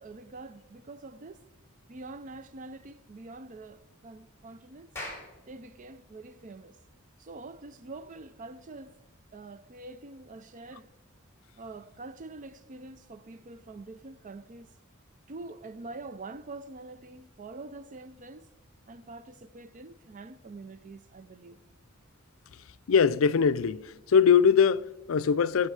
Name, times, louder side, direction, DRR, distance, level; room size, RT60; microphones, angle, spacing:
voice 1, 0.0-1.4 1.9-4.9 5.5-6.8 7.2-8.9 9.3-10.9 11.6-14.7 15.3-18.5 18.9-21.6, right 3 dB, 40° right, 0.5 m, -45 dB
Clapping, 5.0-9.6, left 1 dB, 10° left, 5.2 m, -47 dB
voice 2, 22.9-25.7, left 6 dB, 70° left, 0.5 m, -22 dB
20.0 x 7.9 x 4.8 m
head